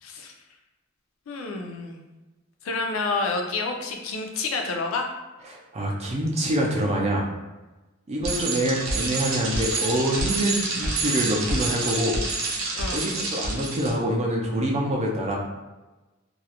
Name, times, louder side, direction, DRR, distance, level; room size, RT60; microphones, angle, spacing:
voice 1, 0.0-0.3 1.3-2.0 2.6-5.1 12.7-13.2, left 3 dB, 70° left, 2 dB, 0.4 m, -29 dB
voice 2, 5.5-7.3 8.1-12.2 12.9-15.4, right 1 dB, 30° right, -1 dB, 0.4 m, -25 dB
Bicycle, 8.2-13.9, right 3 dB, 85° right, 0.5 m, -28 dB
2.3 x 2.0 x 2.8 m, 1.1 s
head